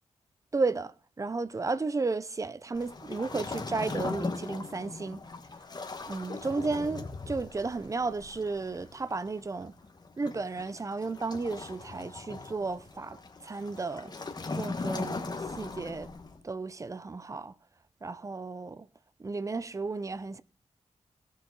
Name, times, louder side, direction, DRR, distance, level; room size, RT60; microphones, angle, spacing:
voice 1, 0.5-5.2 6.1-9.7 10.2-14.1 14.5-16.1 16.4-17.5 18.0-18.9 19.2-20.4, right 3 dB, 25° right, 0.6 m, -33 dB
Waves surf, 2.7-16.4, left 3 dB, 35° left, 1.2 m, -39 dB
17.5 x 7.2 x 3.9 m
wide cardioid pair, 110°, 12 cm